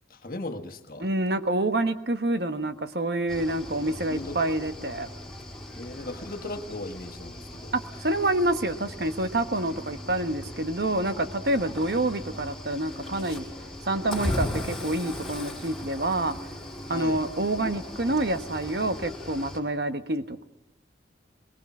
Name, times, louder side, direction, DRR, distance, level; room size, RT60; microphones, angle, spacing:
voice 1, 0.1-1.1 3.8-4.4 5.8-7.7 16.9-17.2, left 2 dB, 50° left, 7 dB, 1.6 m, -37 dB
voice 2, 1.0-5.1 7.7-13.4 13.9-16.4 16.9-20.4, right 1 dB, 65° right, 9 dB, 1.3 m, -27 dB
Cricket / Waves surf, 3.3-19.6, left 1 dB, ahead, 4.3 m, -38 dB
22.5 x 22.0 x 6.1 m, 0.82 s
head